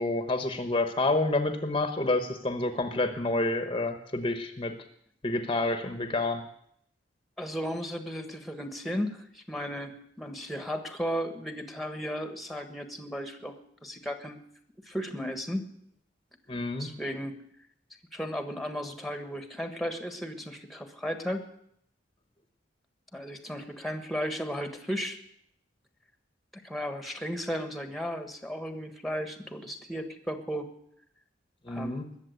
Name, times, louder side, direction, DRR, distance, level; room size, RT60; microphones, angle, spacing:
voice 1, 0.0-4.8 5.2-6.4 16.5-16.9 31.7-32.1, left 2 dB, 30° left, 8 dB, 1.0 m, -28 dB
voice 2, 7.4-13.5 13.8-14.4 14.8-15.7 16.8-17.4 18.1-21.4 23.1-25.2 26.5-30.7 31.7-32.1, equal, ahead, 7 dB, 1.4 m, -35 dB
20.5 x 7.4 x 9.5 m, 0.71 s
head